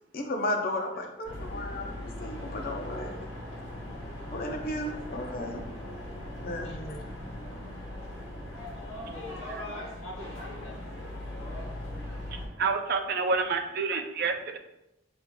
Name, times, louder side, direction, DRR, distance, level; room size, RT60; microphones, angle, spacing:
voice 1, 0.1-3.3 4.3-5.6 6.4-7.0, left 1 dB, 45° left, 3 dB, 0.5 m, -34 dB
sound 1, 1.2-12.5, left 1 dB, 60° left, 1.1 m, -39 dB
voice 2, 9.0-11.3, left 2 dB, 80° left, -3 dB, 1.0 m, -46 dB
voice 3, 12.3-14.6, right 4 dB, 50° right, 6 dB, 0.4 m, -29 dB
5.9 x 2.7 x 2.2 m, 0.90 s
head